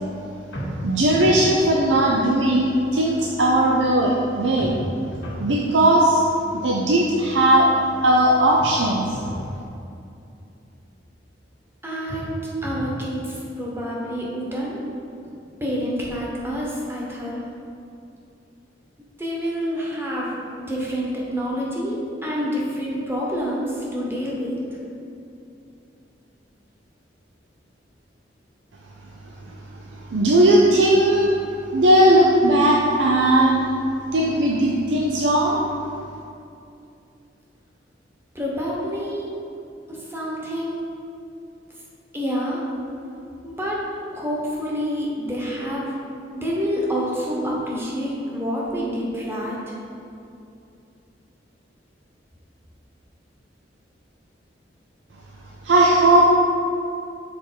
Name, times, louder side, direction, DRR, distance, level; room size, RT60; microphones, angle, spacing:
sound 1, 0.5-1.4 4.6-5.5 8.6-9.5 12.1-13.0, equal, 90° left, 1.6 m, -33 dB
voice 1, 0.8-4.8 5.4-6.2 6.6-7.7 8.0-9.2 30.1-31.4 31.7-33.7 34.1-35.6 55.6-56.3, right 1 dB, 85° right, -2 dB, 0.6 m, -17 dB
voice 2, 11.8-14.8 15.6-17.4 19.2-20.4 20.7-24.6 38.3-39.3 39.9-40.8 42.1-42.7 43.4-43.8 44.1-45.9 46.3-49.7, equal, 15° right, -4 dB, 1.2 m, -27 dB
6.9 x 4.5 x 4.5 m, 2.6 s
head